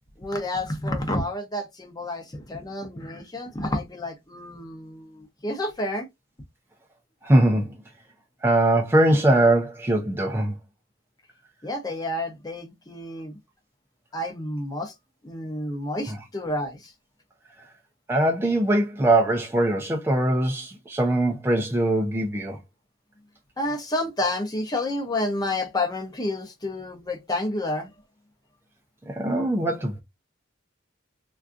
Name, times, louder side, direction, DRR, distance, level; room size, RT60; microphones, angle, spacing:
voice 1, 0.2-6.1 11.6-13.4 14.1-14.9 15.2-16.9 23.6-27.9, left 1 dB, 20° left, 0.7 m, -30 dB
voice 2, 7.2-7.8 8.4-10.5 16.0-16.2 18.1-22.6 29.1-30.0, right 1 dB, 10° right, 0.3 m, -22 dB
3.6 x 2.3 x 2.4 m
head